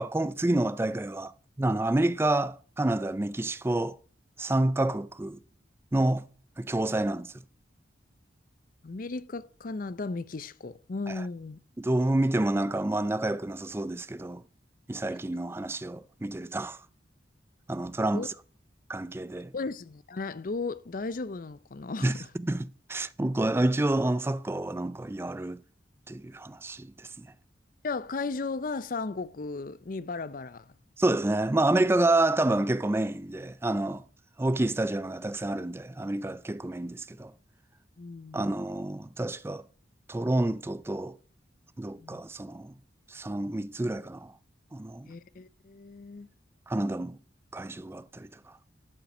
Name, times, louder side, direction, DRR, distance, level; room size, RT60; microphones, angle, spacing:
voice 1, 0.0-4.0 4.4-5.4 5.9-6.2 6.6-7.3 11.1-11.2 11.8-14.4 14.9-16.8 17.7-18.3 18.9-19.5 22.0-25.6 26.1-27.3 31.0-34.0 34.4-37.3 38.3-39.6 40.1-41.2 41.8-42.7 43.1-44.3 44.7-45.1 46.7-47.2 47.5-48.3, right 1 dB, 15° right, 0.3 m, -28 dB
voice 2, 8.8-11.6 18.1-18.3 19.5-22.1 27.8-30.7 38.0-38.5 42.0-42.2 45.1-46.3, left 3 dB, 45° left, 0.5 m, -35 dB
11.5 x 5.8 x 6.0 m
head